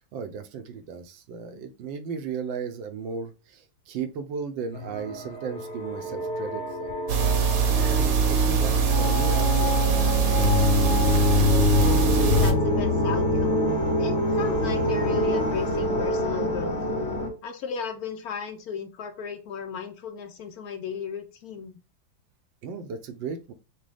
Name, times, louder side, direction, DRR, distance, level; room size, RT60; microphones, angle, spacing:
voice 1, 0.1-6.9 7.6-11.0 14.7-14.9 22.6-23.5, right 6 dB, 85° right, 8 dB, 1.5 m, -36 dB
sound 1, 4.7-17.3, left 2 dB, 30° left, 1.6 m, -25 dB
sound 2, 7.1-12.5, right 6 dB, 55° right, 1.1 m, -22 dB
voice 2, 12.3-13.6 14.0-16.8 17.4-21.8, left 6 dB, 70° left, 6 dB, 0.9 m, -35 dB
6.4 x 2.3 x 3.3 m, 0.30 s
omnidirectional pair, 2.1 m